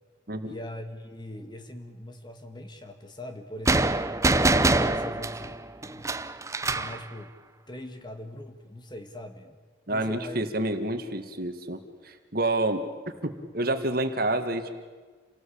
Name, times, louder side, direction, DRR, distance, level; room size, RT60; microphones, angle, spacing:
voice 1, 0.4-4.2 4.7-6.1 6.6-7.3 7.7-9.6 9.9-10.5 10.8-10.9, left 1 dB, 25° left, 7 dB, 1.8 m, -41 dB
sound 1, 3.7-7.0, right 2 dB, 15° right, 0.7 m, -24 dB
voice 2, 9.9-12.8 13.2-14.7, right 2 dB, 50° right, 7 dB, 1.9 m, -28 dB
28.0 x 18.5 x 8.7 m, 1.4 s
head